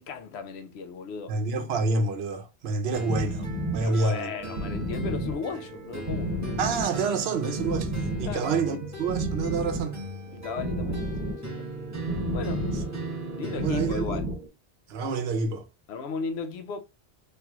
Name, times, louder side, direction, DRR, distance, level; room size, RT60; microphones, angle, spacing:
voice 1, 0.0-1.4 3.8-6.5 8.2-8.5 10.3-11.7 12.3-12.7 13.4-14.3 15.9-16.8, left 5 dB, 85° left, 0.8 m, -36 dB
voice 2, 1.3-3.4 3.7-4.3 6.6-7.9 8.2-10.0 13.6-14.2 14.9-15.7, right 4 dB, 80° right, 0.9 m, -27 dB
sound 1, 2.9-13.9, right 1 dB, 20° right, 0.8 m, -39 dB
sound 2, 3.1-14.5, right 1 dB, 55° right, 1.1 m, -33 dB
3.3 x 2.9 x 2.3 m
omnidirectional pair, 1.0 m